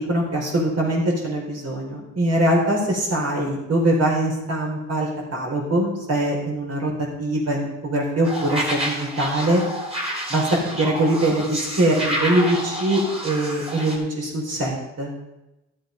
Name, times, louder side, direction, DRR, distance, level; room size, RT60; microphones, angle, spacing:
voice 1, 0.0-6.9 7.2-9.6 10.3-10.5 10.8-15.1, right 1 dB, 55° right, -1 dB, 4.7 m, -22 dB
sound 1, 8.2-14.0, equal, 20° right, 3.8 m, -29 dB
13.0 x 7.9 x 5.3 m, 0.95 s
cardioid pair, 90°, 30 cm